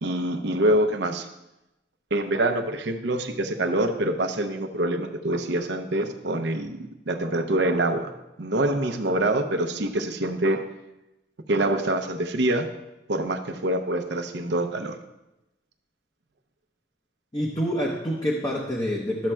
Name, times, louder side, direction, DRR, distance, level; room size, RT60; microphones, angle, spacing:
voice 1, 0.0-1.3 2.1-8.1 8.4-10.6 11.5-12.7 13.1-15.0, right 1 dB, 70° right, 6 dB, 0.7 m, -25 dB
voice 2, 17.3-19.3, equal, 20° left, -2 dB, 0.7 m, -27 dB
12.5 x 7.3 x 2.2 m, 0.95 s
head